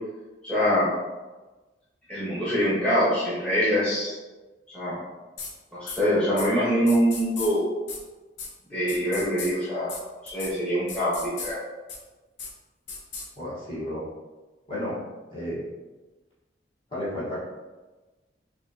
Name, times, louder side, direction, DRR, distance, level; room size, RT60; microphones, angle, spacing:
voice 1, 0.4-0.9 2.1-4.1 4.7-4.9 5.7-7.7 8.7-10.0 10.2-11.6, equal, 5° left, -10 dB, 1.2 m, -24 dB
sound 1, 5.4-5.5 5.9-6.0 6.4-6.5 6.9-7.5 7.9-8.0 8.4-8.5 8.9-9.5 9.9-10.0 10.3-10.5 10.9-11.5 11.9-12.0 12.4-12.5 12.9-13.3, left 4 dB, 75° left, 0.8 m, -35 dB
voice 2, 13.4-14.0 14.7-15.0 15.3-15.7 16.9-17.4, left 1 dB, 30° left, -9 dB, 1.5 m, -32 dB
5.9 x 2.5 x 2.9 m, 1.2 s
head